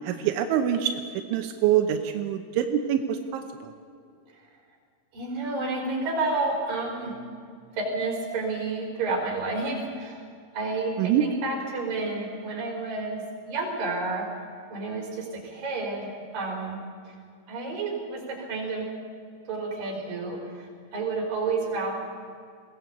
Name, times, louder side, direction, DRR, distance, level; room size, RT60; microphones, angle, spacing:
voice 1, 0.0-0.9 1.3-3.7 11.0-11.2, right 10 dB, 90° right, 5 dB, 3.4 m, -25 dB
voice 2, 5.1-7.1 7.8-10.3 10.5-14.3 14.7-16.8 17.5-18.8 19.5-21.9, right 3 dB, 50° right, 1 dB, 5.9 m, -30 dB
21.5 x 17.5 x 8.5 m, 2.2 s
omnidirectional pair, 5.3 m